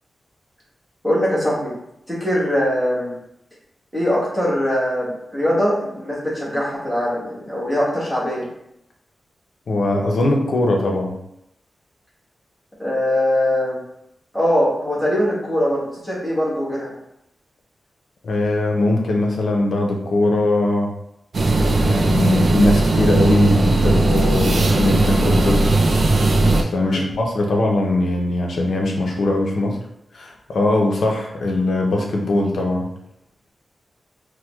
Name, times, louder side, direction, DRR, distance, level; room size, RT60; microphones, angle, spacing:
voice 1, 1.0-1.7 2.1-3.1 3.9-8.5 12.8-13.8 14.3-16.9 26.8-27.0, equal, ahead, -8 dB, 1.2 m, -21 dB
voice 2, 9.7-11.1 18.2-20.9 21.8-25.6 26.4-29.8 30.1-32.9, left 2 dB, 70° left, 0 dB, 0.6 m, -20 dB
sound 1, 21.3-26.6, right 2 dB, 50° right, 0.3 m, -17 dB
4.5 x 2.1 x 2.3 m, 0.80 s
wide cardioid pair, 175°, 0 cm